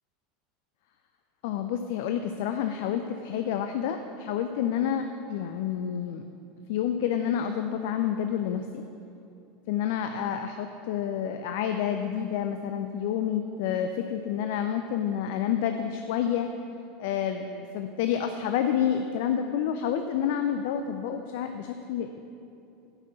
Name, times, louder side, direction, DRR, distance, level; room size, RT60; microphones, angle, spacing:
voice 1, 1.4-6.2 6.7-8.8 9.7-16.5 17.0-22.2, left 9 dB, 55° left, 7 dB, 0.4 m, -29 dB
9.8 x 6.0 x 6.7 m, 2.8 s
figure-of-eight pair, 80°, 0 cm